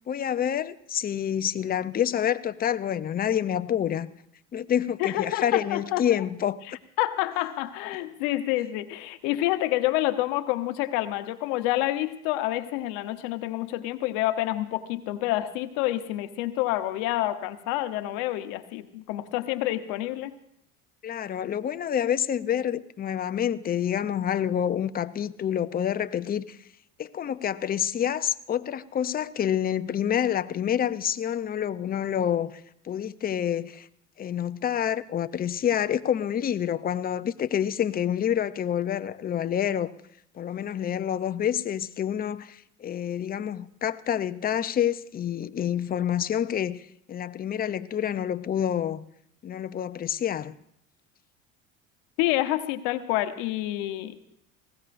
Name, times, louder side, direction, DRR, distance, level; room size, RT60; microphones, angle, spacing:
voice 1, 0.1-4.1 4.5-6.6 21.0-26.6 27.0-33.9 34.2-39.9 40.4-46.8 47.1-49.0 49.4-50.5, left 9 dB, 25° left, 0.5 m, -28 dB
voice 2, 5.0-6.2 7.0-20.3 52.2-54.3, left 15 dB, 75° left, 1.0 m, -28 dB
19.5 x 16.5 x 2.5 m
supercardioid pair, 90°, 37 cm